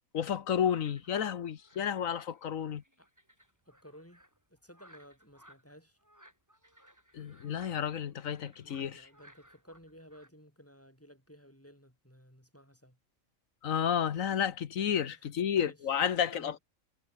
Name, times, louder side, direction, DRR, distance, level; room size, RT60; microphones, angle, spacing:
voice 1, 0.1-2.8 7.1-9.0 13.6-16.6, left 8 dB, 70° left, 1.4 m, -31 dB
sound 1, 0.6-10.3, equal, 10° right, 7.9 m, -61 dB
voice 2, 3.7-4.2 4.5-6.0 8.6-13.0 15.1-15.2 15.6-15.8 16.3-16.6, equal, 10° left, 6.1 m, -55 dB
omnidirectional pair, 1.4 m